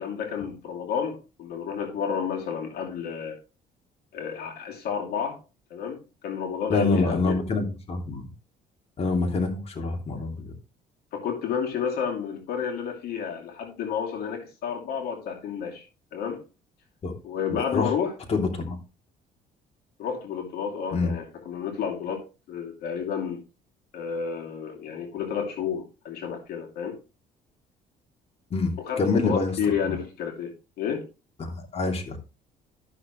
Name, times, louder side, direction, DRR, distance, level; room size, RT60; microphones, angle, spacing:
voice 1, 0.0-3.4 4.1-5.4 5.7-7.4 11.1-15.9 16.1-16.4 17.2-18.1 20.0-23.4 23.9-27.0 28.8-31.1, left 7 dB, 70° left, 2.7 m, -31 dB
voice 2, 6.7-8.2 9.0-10.5 17.0-17.1 17.5-17.9 18.3-18.8 20.9-21.1 28.5-29.5 29.8-30.0 31.4-32.2, left 3 dB, 35° left, 3.0 m, -26 dB
13.5 x 6.5 x 3.1 m
cardioid pair, 110°, 17 cm